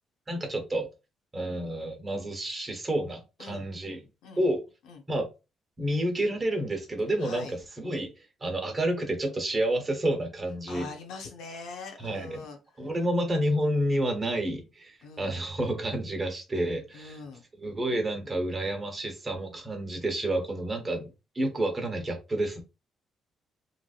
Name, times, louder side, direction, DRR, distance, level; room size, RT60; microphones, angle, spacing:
voice 1, 0.3-0.9 1.3-4.0 4.4-4.6 5.1-5.3 5.8-7.5 7.8-8.1 8.4-10.9 12.0-12.4 12.8-17.2 17.6-21.1 21.3-22.6, right 1 dB, 25° right, 1.0 m, -29 dB
voice 2, 7.2-7.6 10.7-12.8 15.0-15.3 16.9-17.4, left 4 dB, 90° left, 0.8 m, -42 dB
3.2 x 2.6 x 2.5 m
cardioid pair, 90°, 0 cm